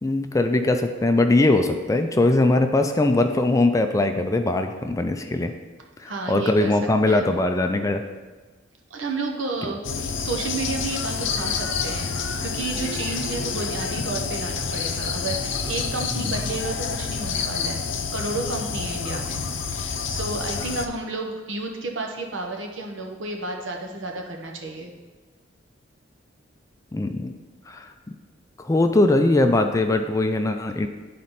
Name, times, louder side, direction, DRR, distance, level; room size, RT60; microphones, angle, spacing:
voice 1, 0.0-5.5 6.0-8.0 16.1-16.3 26.9-27.3 27.7-27.9 28.6-30.9, left 2 dB, 15° left, 6 dB, 0.4 m, -21 dB
voice 2, 6.0-6.7 7.1-7.3 8.9-9.8 10.2-17.8 18.1-19.4 19.7-24.9, right 2 dB, 75° right, 2 dB, 1.0 m, -31 dB
sound 1, 9.8-20.9, left 5 dB, 70° left, 0.6 m, -28 dB
10.5 x 4.2 x 4.1 m, 1.3 s
head